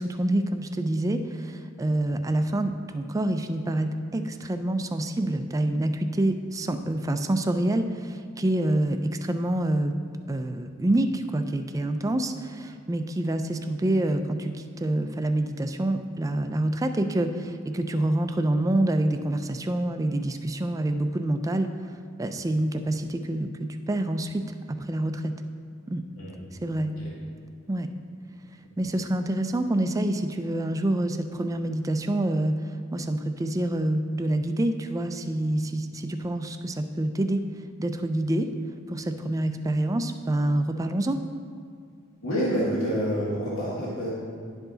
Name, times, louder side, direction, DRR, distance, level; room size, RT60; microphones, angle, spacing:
voice 1, 0.0-10.0 10.3-21.9 22.2-25.3 25.9-26.0 26.6-26.9 27.7-27.9 28.8-37.4 37.8-38.5 38.9-41.2, right 1 dB, 15° right, 7 dB, 0.3 m, -27 dB
voice 2, 42.2-44.1, equal, 80° left, -7 dB, 1.8 m, -27 dB
11.0 x 4.7 x 3.9 m, 2.2 s
head